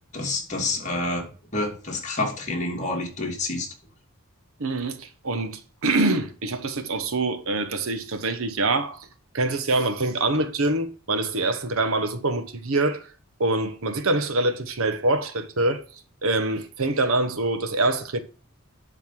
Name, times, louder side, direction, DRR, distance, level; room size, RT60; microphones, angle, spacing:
voice 1, 0.1-1.3 1.5-3.7, left 2 dB, 35° left, 2.9 m, -28 dB
voice 2, 4.6-9.1 9.3-13.1 13.4-15.8 16.2-18.2, right 2 dB, 70° right, 1.2 m, -25 dB
11.0 x 4.1 x 6.0 m
head